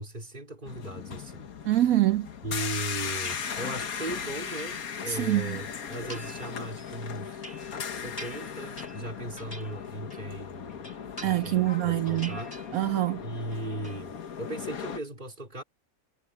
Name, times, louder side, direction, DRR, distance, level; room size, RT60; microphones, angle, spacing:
voice 1, 0.0-1.5 2.4-7.4 8.0-10.8 11.2-12.6 13.2-15.6, right 2 dB, 30° right, 3.6 m, -38 dB
sound 1, 0.7-15.0, left 7 dB, 60° left, 1.7 m, -37 dB
voice 2, 1.6-2.3 5.1-5.6 11.2-12.4 12.7-13.2, right 14 dB, 70° right, 0.9 m, -25 dB
sound 2, 3.2-3.9 4.3-5.4 5.9-6.5 6.9-10.4 10.7-11.7 12.0-13.1 13.4-14.0, equal, 20° left, 7.0 m, -47 dB
omnidirectional pair, 1.8 m